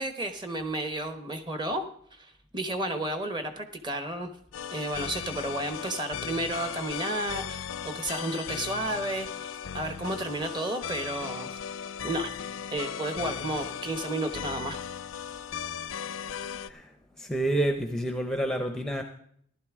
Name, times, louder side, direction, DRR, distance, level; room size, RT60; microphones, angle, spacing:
voice 1, 0.0-1.8 2.1-4.3 4.7-11.5 12.0-12.4 12.7-14.8, right 1 dB, 25° right, 8 dB, 1.0 m, -32 dB
sound 1, 4.5-16.7, left 8 dB, 90° left, 0.5 m, -37 dB
voice 2, 16.5-19.0, right 1 dB, 5° left, 6 dB, 0.6 m, -29 dB
15.0 x 11.5 x 3.6 m, 0.66 s
head